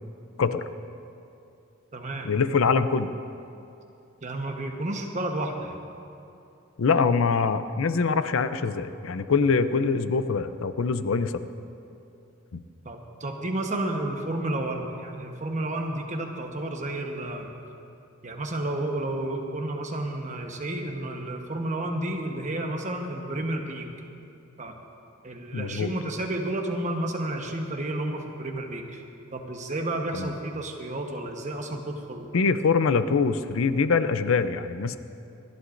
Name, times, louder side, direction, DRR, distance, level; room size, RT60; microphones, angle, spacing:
voice 1, 0.4-0.7 2.2-3.1 6.8-11.4 12.5-12.6 25.5-25.9 30.1-30.3 32.3-35.0, left 5 dB, 80° left, 12 dB, 0.5 m, -24 dB
voice 2, 1.9-2.3 4.2-5.8 12.8-17.5 18.2-23.9 24.6-24.8 25.2-29.0 29.3-32.4, right 1 dB, 35° right, 3 dB, 1.1 m, -31 dB
25.5 x 11.5 x 2.6 m, 2.7 s
head